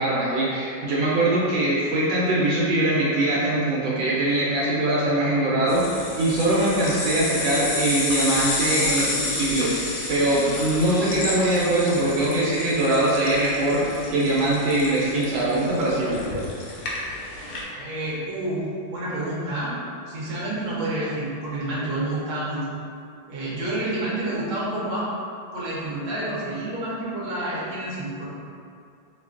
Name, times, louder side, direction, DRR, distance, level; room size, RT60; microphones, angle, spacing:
voice 1, 0.0-5.9 6.2-9.7 10.1-16.2, right 1 dB, 80° right, -7 dB, 1.4 m, -22 dB
sound 1, 5.7-17.6, left 2 dB, 85° left, 0.7 m, -30 dB
voice 2, 17.7-19.7 20.1-22.6 23.3-25.1 25.5-28.3, right 1 dB, 60° right, -7 dB, 1.3 m, -29 dB
4.4 x 2.2 x 2.4 m, 2.4 s
omnidirectional pair, 2.2 m